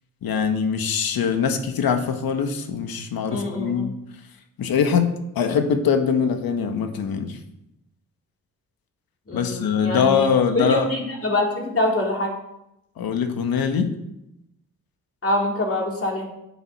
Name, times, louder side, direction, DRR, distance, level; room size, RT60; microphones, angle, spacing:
voice 1, 0.2-4.0 4.6-7.4 9.3-10.9 13.0-13.9, left 6 dB, 80° left, 6 dB, 1.5 m, -22 dB
voice 2, 3.3-3.9 9.3-10.3 10.5-12.3 15.2-16.3, left 1 dB, 40° left, 0 dB, 3.6 m, -24 dB
9.3 x 8.0 x 6.0 m, 0.85 s
cardioid pair, 70°, 35 cm